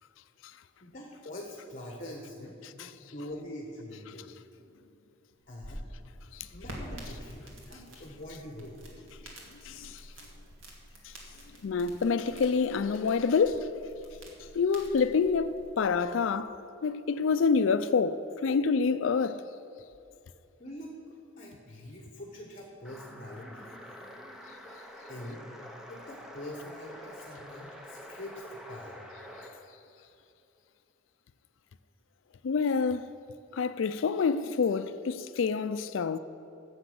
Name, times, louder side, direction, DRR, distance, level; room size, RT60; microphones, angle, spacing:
voice 1, 0.8-4.4 5.5-5.9 6.3-8.8 20.6-20.9 21.4-23.7 25.1-25.5 25.9-29.0 30.0-30.1, left 1 dB, 40° left, 1.1 m, -44 dB
sound 1, 5.4-16.0, equal, 80° right, 2.0 m, -48 dB
voice 2, 9.6-10.0 11.6-13.7 14.5-16.6 16.8-19.4 32.4-33.1 33.5-36.2, left 5 dB, 80° left, 0.4 m, -27 dB
sound 2, 22.8-29.6, equal, ahead, 0.7 m, -47 dB
9.9 x 7.2 x 7.7 m
head